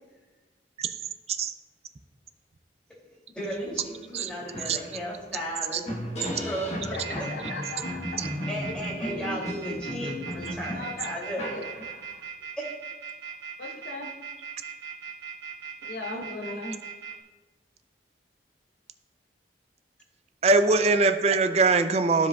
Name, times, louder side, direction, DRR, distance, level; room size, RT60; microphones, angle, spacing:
voice 1, 3.3-5.9 6.2-7.3 8.5-11.6 12.6-12.7 13.2-13.3, equal, 5° left, -7 dB, 2.5 m, -35 dB
sound 1, 3.7-3.8 4.2-12.2, equal, 40° left, 1.2 m, -35 dB
voice 2, 6.9-8.0 10.7-11.2 11.5-11.7 13.6-14.1 15.9-16.8 20.8-20.9, left 2 dB, 60° left, -1 dB, 0.8 m, -37 dB
sound 2, 7.0-17.1, right 7 dB, 75° right, 1.0 m, -39 dB
voice 3, 20.4-22.3, right 3 dB, 35° right, 9 dB, 0.3 m, -21 dB
14.0 x 5.0 x 2.3 m, 1.2 s
head